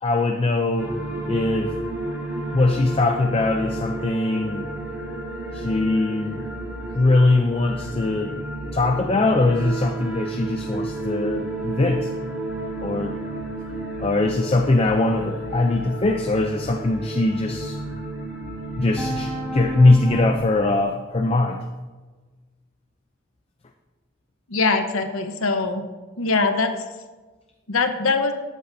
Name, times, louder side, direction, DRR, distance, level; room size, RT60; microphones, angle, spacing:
voice 1, 0.0-0.9 1.3-1.7 2.5-4.6 5.5-6.4 6.9-8.3 8.7-12.1 12.8-13.2 14.0-17.8 18.8-21.6, left 2 dB, 30° left, 4 dB, 0.4 m, -21 dB
sound 1, 0.8-20.4, right 2 dB, 10° right, 1.7 m, -31 dB
voice 2, 24.5-25.8 26.2-26.8 27.7-28.3, left 4 dB, 85° left, 6 dB, 1.0 m, -22 dB
13.0 x 8.7 x 2.7 m, 1.3 s
head